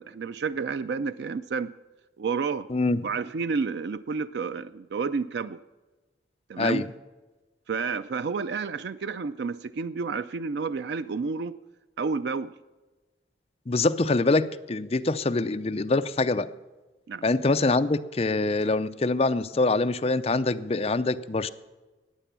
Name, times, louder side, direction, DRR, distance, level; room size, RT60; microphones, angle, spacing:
voice 1, 0.0-1.7 2.2-2.7 3.0-5.6 6.5-6.8 7.7-11.6 12.0-12.5 17.1-17.2, right 5 dB, 70° right, 13 dB, 0.4 m, -30 dB
voice 2, 2.7-3.1 6.6-6.9 13.7-16.5 17.2-21.5, left 3 dB, 35° left, 9 dB, 0.5 m, -24 dB
14.5 x 9.3 x 6.9 m, 1.2 s
head